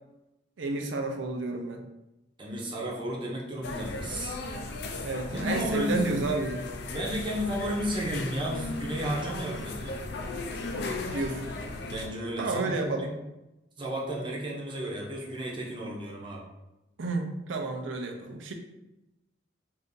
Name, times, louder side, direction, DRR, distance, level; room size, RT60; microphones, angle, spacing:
voice 1, 0.6-1.8 5.0-6.6 11.1-11.5 12.4-13.1 17.0-18.5, right 3 dB, 90° right, 4 dB, 0.5 m, -31 dB
voice 2, 2.4-4.4 5.3-6.1 6.9-10.0 11.9-13.1 13.8-16.4, equal, 25° right, -2 dB, 0.6 m, -33 dB
sound 1, 3.6-12.1, left 2 dB, 60° left, 0.4 m, -36 dB
2.5 x 2.5 x 3.7 m, 0.96 s
head